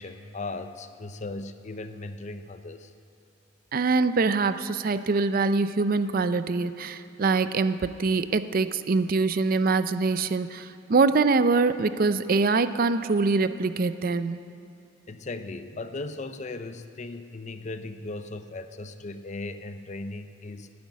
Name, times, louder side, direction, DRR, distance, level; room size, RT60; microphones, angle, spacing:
voice 1, 0.0-2.9 15.1-20.7, left 2 dB, 40° left, 10 dB, 0.6 m, -37 dB
voice 2, 3.7-14.4, right 4 dB, 50° right, 12 dB, 0.5 m, -24 dB
12.5 x 9.5 x 9.1 m, 2.6 s
head